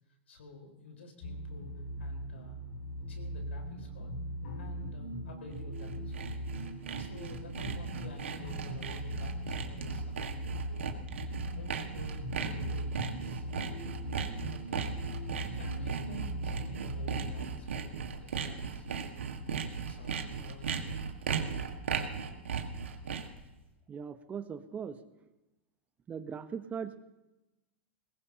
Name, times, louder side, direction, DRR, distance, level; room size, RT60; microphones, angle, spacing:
voice 1, 0.3-1.7 2.0-2.6 3.1-4.1 4.6-6.3 7.0-10.9 11.1-13.8 14.5-14.9 15.2-19.1 19.6-20.8 21.3-21.7, left 3 dB, 80° left, 2 dB, 4.4 m, -51 dB
sound 1, 1.2-17.3, equal, 55° left, 7.2 m, -39 dB
Sawing, 5.6-23.4, right 6 dB, 80° right, 1.7 m, -37 dB
voice 2, 23.9-25.0 26.1-27.0, right 7 dB, 25° right, 11 dB, 0.9 m, -39 dB
22.0 x 19.5 x 2.9 m, 1.0 s
hypercardioid pair, 100°, 7 cm